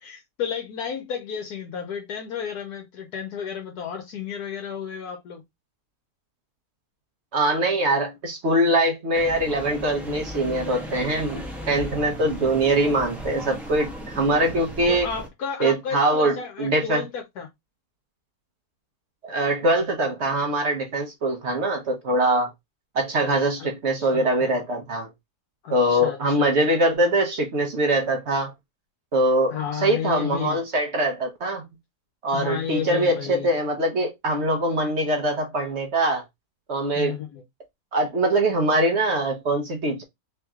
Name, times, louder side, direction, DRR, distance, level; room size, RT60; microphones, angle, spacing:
voice 1, 0.0-5.4 14.9-17.5 23.6-23.7 24.0-24.6 25.6-26.8 29.5-30.6 32.3-33.5 37.0-37.4, left 7 dB, 70° left, 1.2 m, -32 dB
voice 2, 7.3-15.1 15.6-17.0 19.2-22.5 22.9-25.1 25.7-28.5 29.1-31.6 32.2-36.2 36.7-37.2 37.9-40.0, right 1 dB, 55° right, 0.9 m, -23 dB
sound 1, 9.1-15.3, equal, ahead, 0.7 m, -36 dB
3.4 x 3.0 x 3.5 m
omnidirectional pair, 1.8 m